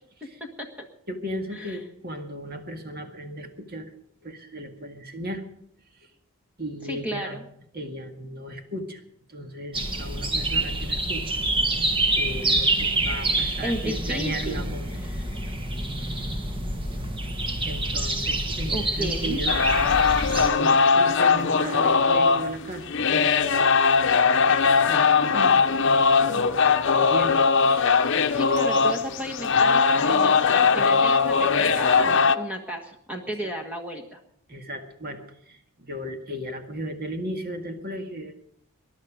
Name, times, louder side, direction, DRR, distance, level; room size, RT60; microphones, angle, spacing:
voice 1, 1.1-3.9 4.2-5.4 6.6-7.4 7.7-9.0 9.3-11.4 11.7-11.8 12.2-14.9 17.6-19.5 20.3-23.7 24.5-27.4 27.6-28.0 34.5-35.2 35.5-38.3, equal, 45° right, 5 dB, 2.0 m, -35 dB
voice 2, 6.8-7.4 13.3-14.6 15.0-15.3 18.7-19.4 28.3-34.2, equal, 5° right, 1 dB, 1.4 m, -34 dB
sound 1, 9.7-20.5, right 2 dB, 25° right, 1.7 m, -27 dB
sound 2, 19.5-32.4, left 5 dB, 55° left, 0.8 m, -20 dB
21.0 x 11.5 x 5.0 m, 0.73 s
head